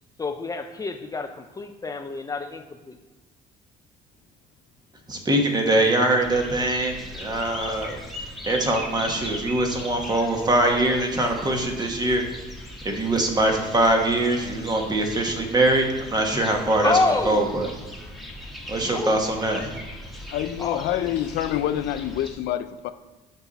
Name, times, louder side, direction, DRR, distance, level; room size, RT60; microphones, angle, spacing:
voice 1, 0.2-3.0 16.8-17.5 18.9-19.2 20.6-21.1, left 3 dB, 20° left, 0.5 m, -27 dB
voice 2, 5.1-8.0 8.4-12.2 12.8-16.9 17.2-17.7 18.7-19.8, right 1 dB, 25° right, 1.4 m, -23 dB
sound 1, 6.2-22.3, left 1 dB, ahead, 1.4 m, -39 dB
voice 3, 20.3-22.9, left 12 dB, 80° left, 0.5 m, -27 dB
8.0 x 5.4 x 4.1 m
cardioid pair, 110°, 17 cm